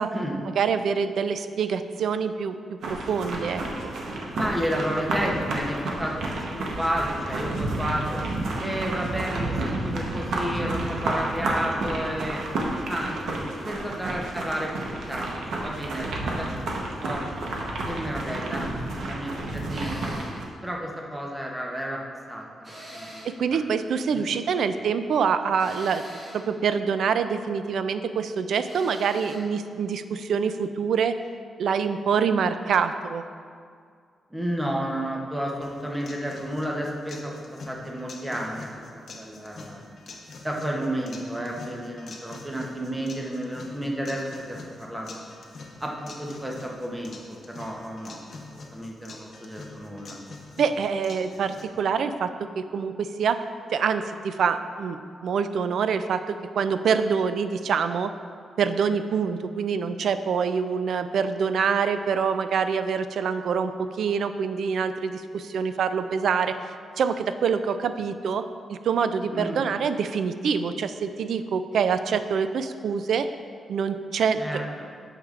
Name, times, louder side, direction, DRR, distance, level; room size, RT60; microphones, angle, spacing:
voice 1, 0.6-2.6 2.9-3.9 23.3-26.0 26.3-31.2 31.6-33.2 50.6-53.4 53.7-58.1 58.6-68.4 68.7-73.3 73.7-74.4, right 6 dB, 70° right, 10 dB, 0.3 m, -25 dB
sound 1, 2.8-20.4, right 2 dB, 85° right, 0.9 m, -31 dB
voice 2, 4.3-8.2 8.6-12.4 12.8-16.7 17.0-17.3 17.8-20.0 20.6-22.0 22.3-23.6 24.1-24.2 24.5-24.8 34.3-39.8 40.4-45.2 45.8-50.2 69.2-69.6 74.4-74.9, equal, 10° right, -1 dB, 0.8 m, -32 dB
sound 2, 19.7-20.4 22.6-23.4 25.6-26.5 28.7-29.4, equal, 25° right, 1.4 m, -43 dB
sound 3, 35.6-51.6, left 3 dB, 50° left, 0.8 m, -44 dB
8.6 x 6.5 x 2.5 m, 2.1 s
wide cardioid pair, 155°, 0 cm